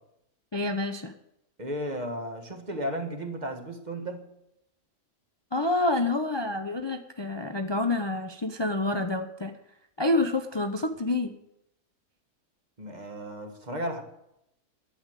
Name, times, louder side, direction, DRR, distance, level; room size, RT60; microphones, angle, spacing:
voice 1, 0.5-1.1 5.5-9.5 10.0-11.3, left 2 dB, 30° left, 7 dB, 0.4 m, -28 dB
voice 2, 1.6-4.3 12.8-14.0, equal, 30° right, 6 dB, 1.6 m, -34 dB
11.5 x 8.1 x 9.0 m, 0.82 s
omnidirectional pair, 1.6 m